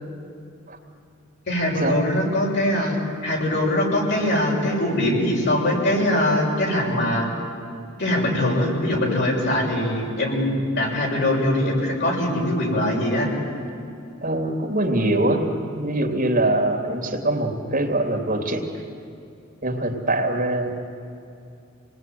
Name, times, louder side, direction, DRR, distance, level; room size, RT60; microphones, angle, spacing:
voice 1, 1.5-2.9 3.2-7.3 8.0-13.3, left 1 dB, 60° left, -2 dB, 6.8 m, -22 dB
voice 2, 14.2-15.4 15.7-18.6 19.6-20.8, right 1 dB, 45° right, 3 dB, 2.8 m, -23 dB
28.5 x 20.0 x 9.4 m, 2.6 s
head